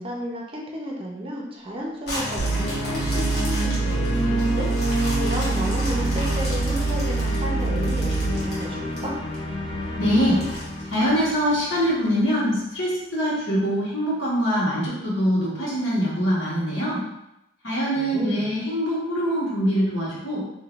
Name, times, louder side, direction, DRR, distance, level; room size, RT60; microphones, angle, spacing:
voice 1, 0.0-4.7 5.2-9.2 18.0-18.5, equal, 30° right, -2 dB, 0.5 m, -33 dB
sound 1, 2.0-9.4 9.8-9.9 10.4-11.7 12.2-12.3, equal, 55° left, 1.1 m, -36 dB
sound 2, 2.1-12.2, equal, 25° left, 0.5 m, -29 dB
sound 3, 2.4-8.5, right 4 dB, 80° right, 0.4 m, -26 dB
voice 2, 10.0-10.4 10.9-17.0 17.6-20.4, equal, 80° left, -8 dB, 1.4 m, -23 dB
3.5 x 2.6 x 2.4 m, 0.87 s
head